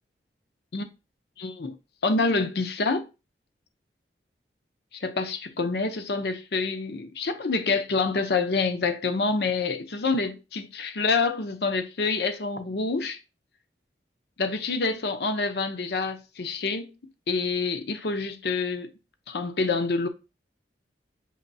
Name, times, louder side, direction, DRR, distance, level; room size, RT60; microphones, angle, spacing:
voice 1, 1.4-1.7 2.0-3.1 5.0-13.2 14.4-16.9 17.3-18.9 19.3-20.1, left 4 dB, 70° left, 0.6 m, -27 dB
6.5 x 3.0 x 2.7 m
head